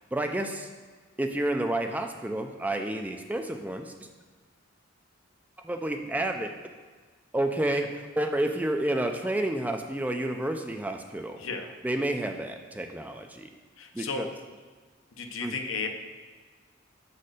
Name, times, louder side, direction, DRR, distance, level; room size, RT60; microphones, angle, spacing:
voice 1, 0.1-0.7 1.2-3.9 5.6-6.5 7.3-7.9 8.2-11.4 11.8-13.5 13.9-14.3 15.4-15.5, right 1 dB, 10° right, 5 dB, 0.3 m, -30 dB
voice 2, 11.4-11.7 13.8-14.3 15.1-15.9, left 4 dB, 70° left, 4 dB, 0.8 m, -34 dB
6.2 x 4.2 x 6.4 m, 1.4 s
head